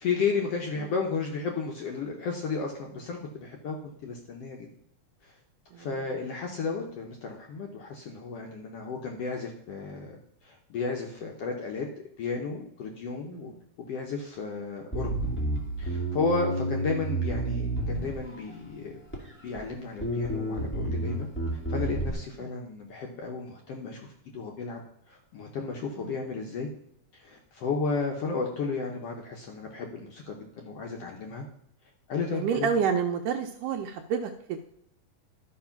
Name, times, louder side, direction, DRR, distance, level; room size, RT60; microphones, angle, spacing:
voice 1, 0.0-4.7 5.2-5.3 5.8-11.9 12.2-13.5 13.9-15.1 15.8-19.0 19.4-24.0 24.3-24.8 25.1-26.7 27.1-31.4 32.1-32.7, left 4 dB, 65° left, 1 dB, 1.6 m, -33 dB
Bass guitar, 14.9-18.5 19.1-19.7 20.0-22.1, right 1 dB, 5° left, 1.6 m, -30 dB
voice 2, 32.3-34.6, right 7 dB, 80° right, 4 dB, 2.1 m, -29 dB
12.5 x 4.8 x 5.8 m, 0.70 s
omnidirectional pair, 3.7 m